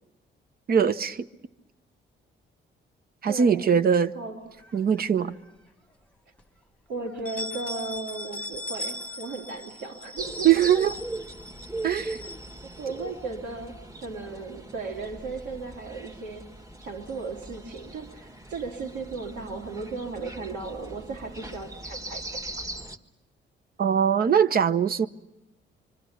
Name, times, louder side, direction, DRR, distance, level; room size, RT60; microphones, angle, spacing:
voice 1, 0.7-1.3 3.2-4.1 4.7-5.3 10.4-10.9 11.8-12.2 23.8-25.1, right 8 dB, 50° right, 0.9 m, -21 dB
voice 2, 3.3-3.8 4.1-4.4 6.9-10.8 12.2-12.3 12.6-13.8 14.0-22.6, right 3 dB, 75° right, 2.6 m, -36 dB
sound 1, 4.6-5.5 5.9-6.0 6.4-6.5 7.0-13.3, left 1 dB, 5° left, 1.3 m, -40 dB
sound 2, 10.2-23.0, right 2 dB, 15° right, 1.6 m, -40 dB
25.5 x 25.0 x 7.1 m
cardioid pair, 90°, 20 cm